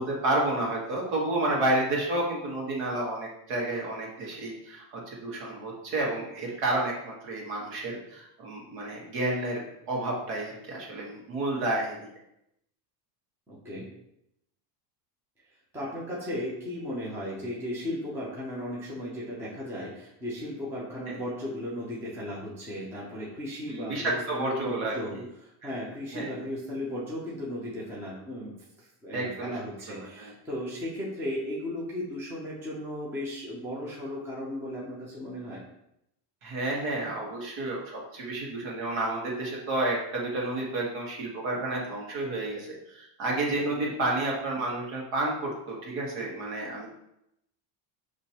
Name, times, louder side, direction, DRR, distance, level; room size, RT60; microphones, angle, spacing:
voice 1, 0.0-12.0 21.1-21.2 23.7-25.2 25.6-25.7 26.1-26.5 29.1-29.5 29.9-30.3 36.4-46.9, right 2 dB, 65° right, -3 dB, 1.7 m, -30 dB
voice 2, 13.5-13.9 15.7-25.1 25.4-28.5 28.8-35.6 43.7-43.8, left 1 dB, 5° right, -6 dB, 0.5 m, -36 dB
6.1 x 3.0 x 2.9 m, 0.81 s
cardioid pair, 165°, 49 cm